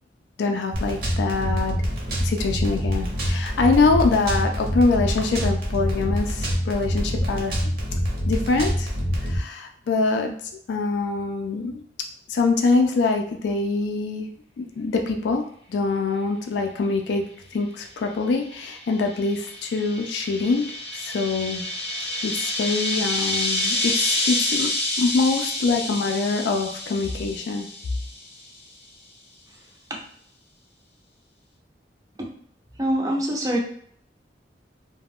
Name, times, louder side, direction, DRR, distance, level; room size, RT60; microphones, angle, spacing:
voice 1, 0.4-1.8 2.2-7.5 8.3-8.9 9.3-10.3 10.7-11.8 12.3-14.3 14.6-15.4 15.7-17.2 17.5-20.7 20.9-21.6 22.2-24.7 25.0-27.7, left 3 dB, 80° left, 4 dB, 0.3 m, -24 dB
sound 1, 0.7-9.4, equal, 55° right, 0.8 m, -26 dB
sound 2, 18.5-28.3, left 1 dB, 35° left, 0.6 m, -28 dB
voice 2, 32.8-33.6, right 1 dB, 20° right, 0 dB, 0.5 m, -24 dB
2.4 x 2.1 x 3.4 m, 0.64 s
head